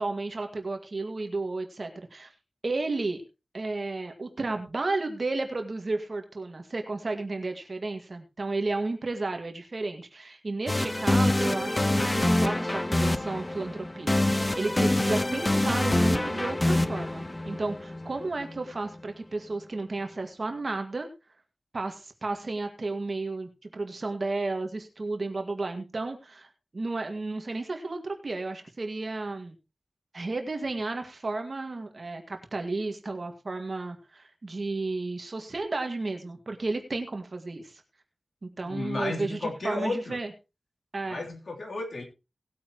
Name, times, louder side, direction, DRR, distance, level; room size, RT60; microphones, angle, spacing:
voice 1, 0.0-2.3 2.6-3.2 3.5-21.1 21.7-29.6 30.1-37.8 38.4-40.3 40.9-41.3, right 3 dB, 50° right, 5 dB, 1.9 m, -33 dB
sound 1, 10.7-18.6, left 1 dB, 20° left, 0.7 m, -26 dB
voice 2, 38.6-40.2 41.1-42.0, left 2 dB, 75° left, 0 dB, 3.3 m, -33 dB
19.0 x 8.6 x 3.0 m, 0.28 s
wide cardioid pair, 85°, 0 cm